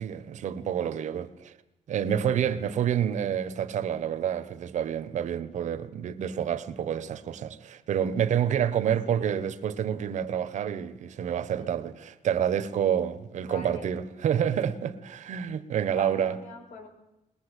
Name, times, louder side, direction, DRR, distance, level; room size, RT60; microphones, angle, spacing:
voice 1, 0.0-1.5 1.9-16.4, right 9 dB, 75° right, 1.3 m, -28 dB
voice 2, 9.1-9.4 11.6-11.7 13.4-13.9 15.9-16.9, left 2 dB, 80° left, 5.8 m, -43 dB
21.5 x 20.5 x 8.3 m
wide cardioid pair, 180°, 13 cm